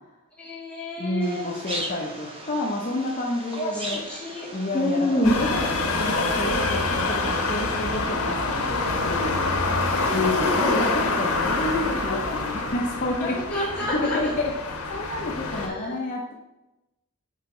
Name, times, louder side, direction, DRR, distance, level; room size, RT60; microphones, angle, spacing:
voice 1, 0.4-1.5 3.6-4.5 4.7-5.4 10.0-10.9 13.2-14.2 15.5-16.0, left 1 dB, 5° left, -8 dB, 2.0 m, -27 dB
voice 2, 1.0-4.0 4.5-9.4 10.1-16.3, left 2 dB, 35° left, -3 dB, 0.8 m, -30 dB
sound 1, 1.2-6.2, right 1 dB, 25° right, 1.0 m, -38 dB
sound 2, 5.2-15.7, left 3 dB, 75° left, 1.1 m, -26 dB
6.5 x 4.7 x 3.8 m, 0.99 s
head